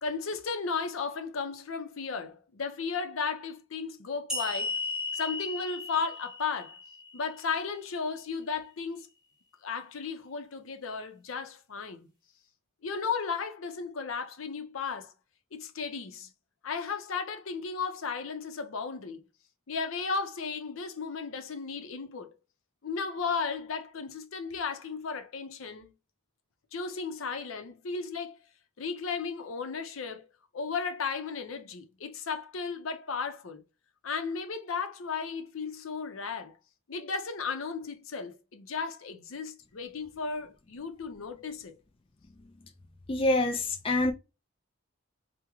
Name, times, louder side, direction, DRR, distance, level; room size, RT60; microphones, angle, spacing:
voice 1, 0.0-4.7 5.1-6.8 7.1-9.1 9.6-12.1 12.8-15.1 15.5-16.3 16.6-19.2 19.7-22.3 22.8-25.9 26.7-28.4 28.8-30.3 30.5-33.6 34.0-36.6 36.9-41.7, left 5 dB, 80° left, 0.6 m, -35 dB
sound 1, 4.3-7.7, left 3 dB, 5° right, 0.9 m, -36 dB
voice 2, 43.1-44.1, left 2 dB, 25° left, 0.4 m, -26 dB
3.5 x 2.1 x 2.9 m
head